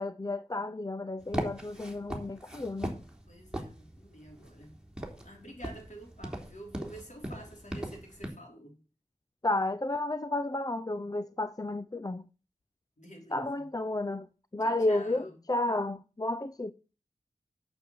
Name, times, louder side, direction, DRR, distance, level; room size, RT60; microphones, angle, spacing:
voice 1, 0.0-3.0 9.4-12.2 13.3-14.3 14.5-16.7, left 2 dB, 25° left, 0.6 m, -32 dB
sound 1, 1.2-8.3, right 1 dB, 5° right, 3.6 m, -40 dB
voice 2, 3.3-4.8 5.2-8.8 13.0-13.7 14.6-15.4, right 1 dB, 55° left, 4.9 m, -49 dB
9.0 x 7.1 x 7.9 m
cardioid pair, 45°, 15 cm